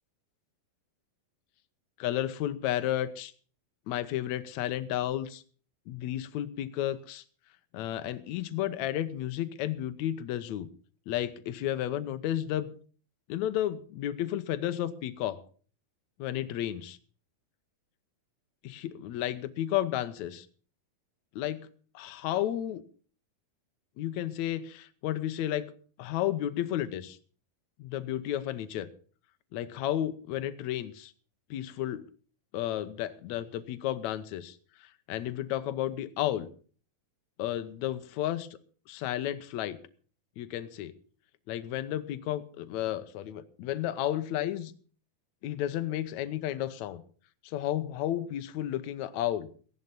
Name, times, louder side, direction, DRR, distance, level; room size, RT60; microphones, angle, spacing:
voice 1, 2.0-3.3 3.9-5.4 5.9-7.2 7.7-10.7 11.1-12.7 13.3-15.4 16.2-17.0 18.6-20.5 21.4-21.7 21.9-22.8 24.0-25.7 26.0-27.2 27.8-28.9 29.5-31.1 31.5-32.0 32.5-36.5 37.4-38.5 38.9-39.8 40.4-40.9 41.5-44.7 45.4-47.0 47.4-49.5, left 12 dB, 70° left, 11 dB, 1.8 m, -32 dB
16.5 x 11.0 x 5.4 m, 0.42 s
omnidirectional pair, 4.2 m